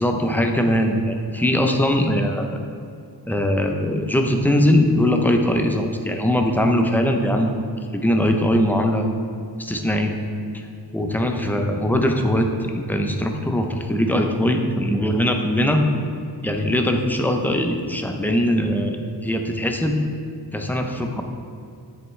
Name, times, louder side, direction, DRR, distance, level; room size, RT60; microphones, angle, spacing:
voice 1, 0.0-2.6 3.3-7.5 7.9-9.1 9.6-10.2 10.5-10.7 10.9-15.8 16.4-19.0 19.2-20.0 20.5-21.2, left 1 dB, 5° left, 3 dB, 0.6 m, -21 dB
7.9 x 7.8 x 3.3 m, 2.4 s
wide cardioid pair, 110°, 40 cm